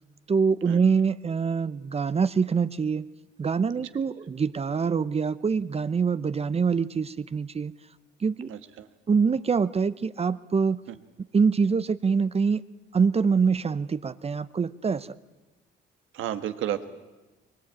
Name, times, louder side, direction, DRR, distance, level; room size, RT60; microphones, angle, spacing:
voice 1, 0.3-3.0 3.4-7.7 8.2-8.5 9.1-10.8 11.3-12.6 12.9-15.1, right 5 dB, 30° right, 15 dB, 0.7 m, -24 dB
voice 2, 8.5-8.9 10.9-11.0 16.1-16.9, right 11 dB, 85° right, 10 dB, 1.5 m, -32 dB
23.5 x 21.5 x 8.8 m, 1.1 s
cardioid pair, 90°, 20 cm